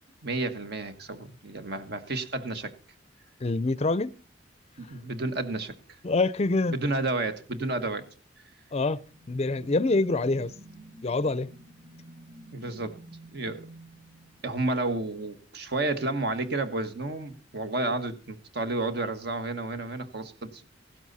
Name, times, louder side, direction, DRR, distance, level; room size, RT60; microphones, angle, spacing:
voice 1, 0.2-2.7 4.8-5.7 6.7-8.0 12.5-13.0 13.3-13.7 14.4-20.6, right 2 dB, 55° right, 1.5 m, -31 dB
voice 2, 3.4-4.1 6.0-6.8 8.7-9.0 9.3-10.5 11.0-11.5, left 3 dB, 35° left, 0.5 m, -25 dB
sound 1, 8.5-15.1, right 1 dB, 80° right, 3.0 m, -50 dB
16.0 x 12.0 x 4.1 m
head